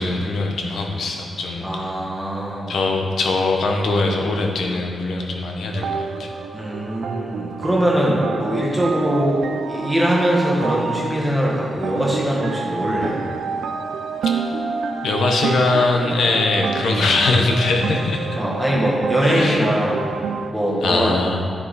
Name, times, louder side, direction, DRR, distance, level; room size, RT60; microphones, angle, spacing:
voice 1, 0.0-1.9 2.7-6.3 14.2-14.3 15.0-18.3 19.2-19.6 20.8-21.4, left 3 dB, 75° left, 2 dB, 0.9 m, -21 dB
voice 2, 1.6-2.8 6.5-9.4 9.7-13.2 18.4-20.1 20.5-21.1, equal, ahead, -5 dB, 1.3 m, -21 dB
sound 1, 5.7-20.5, right 5 dB, 90° right, 0.4 m, -28 dB
9.9 x 4.8 x 4.1 m, 2.2 s
wide cardioid pair, 165°, 0 cm